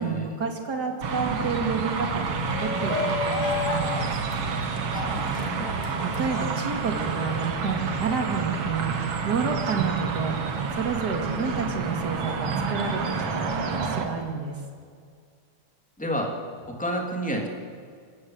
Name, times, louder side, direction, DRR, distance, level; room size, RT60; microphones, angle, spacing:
voice 1, 0.0-4.1 6.0-14.6, right 5 dB, 35° right, 3 dB, 2.5 m, -30 dB
sound 1, 1.0-14.1, right 5 dB, 50° right, 2.4 m, -29 dB
Shout, 2.3-7.4, left 5 dB, 60° left, 2.3 m, -33 dB
voice 2, 4.9-5.7 16.0-16.4 16.6-17.5, equal, 5° left, 1 dB, 2.3 m, -30 dB
27.0 x 15.5 x 7.9 m, 2.1 s
omnidirectional pair, 3.8 m